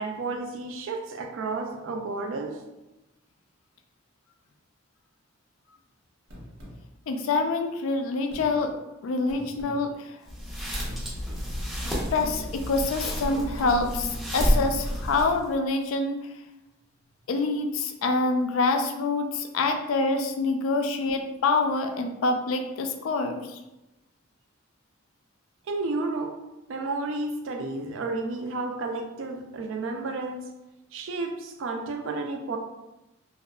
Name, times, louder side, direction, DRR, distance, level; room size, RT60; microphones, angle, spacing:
voice 1, 0.0-2.6 25.7-26.4 26.7-30.5 30.9-32.6, right 3 dB, 65° right, 3 dB, 0.4 m, -31 dB
sound 1, 6.3-6.8 8.3-8.5 9.3-9.8 10.8-11.0 11.8-12.0 13.0-13.7, equal, 90° right, 0.8 m, -43 dB
voice 2, 7.1-8.7 9.0-10.2 12.1-16.2 17.3-23.6, left 3 dB, 75° left, 5 dB, 0.3 m, -26 dB
sound 2, 10.2-15.5, equal, ahead, 0.5 m, -30 dB
2.7 x 2.3 x 2.2 m, 0.97 s
head